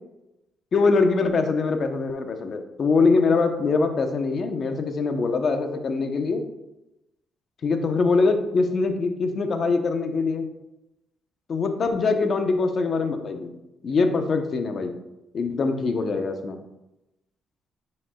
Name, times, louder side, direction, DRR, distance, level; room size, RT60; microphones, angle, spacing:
voice 1, 0.7-6.4 7.6-10.5 11.5-13.5 13.8-14.9 15.3-16.6, left 4 dB, 50° left, 6 dB, 0.9 m, -23 dB
9.5 x 5.4 x 2.3 m, 0.94 s
cardioid pair, 90°, 0 cm